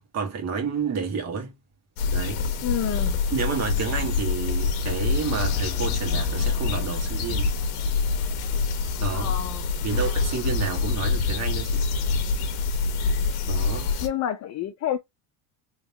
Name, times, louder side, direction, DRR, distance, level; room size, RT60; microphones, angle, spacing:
voice 1, 0.0-1.5 2.1-2.5 3.3-7.5 9.0-9.4 9.8-11.8 13.5-13.9, right 5 dB, 40° right, 1.7 m, -30 dB
sound 1, 2.0-14.1, left 4 dB, 65° left, 1.1 m, -26 dB
voice 2, 2.6-3.2 9.1-9.7 14.0-15.0, left 11 dB, 40° left, 0.6 m, -29 dB
3.6 x 3.1 x 2.8 m
cardioid pair, 135°, 42 cm